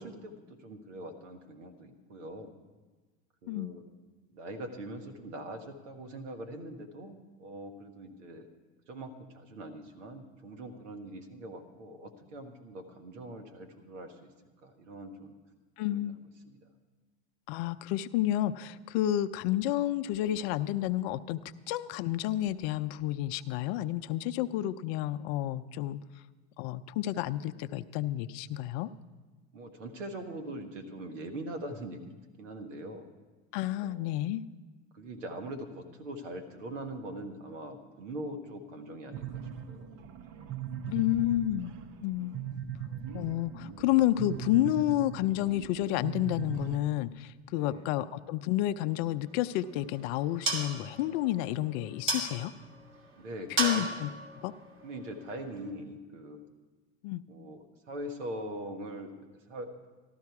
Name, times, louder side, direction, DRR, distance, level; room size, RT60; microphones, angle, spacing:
voice 1, 0.0-2.5 3.4-3.8 4.3-8.5 8.9-14.3 14.6-15.4 15.9-16.1 16.4-16.6 29.5-33.1 33.8-34.1 34.9-40.0 47.5-47.9 53.1-53.9 54.8-56.4 57.3-59.1 59.5-59.7, right 1 dB, 85° right, 6 dB, 1.6 m, -42 dB
voice 2, 15.8-16.2 17.5-21.4 21.7-26.0 26.6-28.9 33.5-34.4 40.9-41.7 42.0-42.3 43.1-52.5 53.6-54.1 54.4-54.5 57.0-57.2, left 14 dB, 60° left, 12 dB, 0.6 m, -30 dB
sound 1, 39.1-46.8, right 9 dB, 55° right, 0.9 m, -40 dB
sound 2, 49.3-55.7, right 2 dB, 35° right, 2.5 m, -37 dB
13.0 x 13.0 x 4.7 m, 1.3 s
hypercardioid pair, 95°, 36 cm